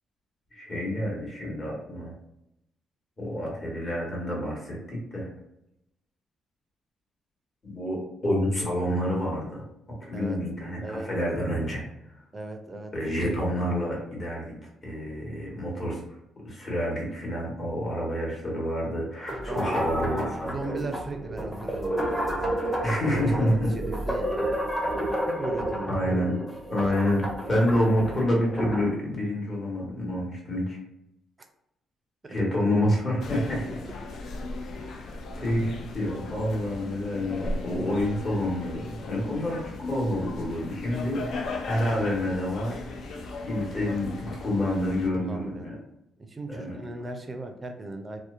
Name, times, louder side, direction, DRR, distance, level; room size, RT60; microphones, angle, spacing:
voice 1, 0.5-2.1 3.2-5.3 7.6-9.6 9.9-11.8 12.9-14.5 14.8-20.5 22.8-23.7 25.9-26.4 26.7-30.8 32.3-33.7 34.8-35.1 35.4-42.8 43.4-45.8 46.5-46.8, left 1 dB, 35° left, -3 dB, 1.2 m, -28 dB
voice 2, 12.3-12.9 19.5-19.8 20.4-22.7 23.0-24.3 25.3-26.0 45.2-45.7 46.2-48.2, right 2 dB, 25° right, 5 dB, 0.4 m, -37 dB
sound 1, 19.3-28.9, equal, 10° left, 0.7 m, -31 dB
sound 2, 33.2-45.1, left 2 dB, 70° left, 0.4 m, -37 dB
2.8 x 2.0 x 2.4 m, 0.84 s
cardioid pair, 110°, 0 cm